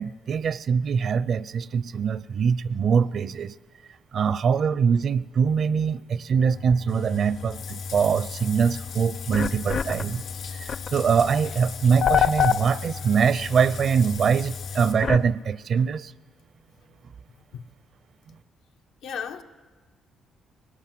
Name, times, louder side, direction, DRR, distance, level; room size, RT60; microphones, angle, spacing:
voice 1, 0.0-3.5 4.1-10.2 10.6-16.1, right 6 dB, 55° right, 19 dB, 0.5 m, -23 dB
sound 1, 6.4-15.3, left 8 dB, 50° left, 0.7 m, -30 dB
Bathtub (filling or washing), 6.9-14.9, left 7 dB, 65° left, 3.1 m, -41 dB
voice 2, 19.0-19.4, left 7 dB, 80° left, 6 dB, 1.1 m, -34 dB
19.5 x 18.5 x 7.7 m, 1.4 s
cardioid pair, 90°, 0 cm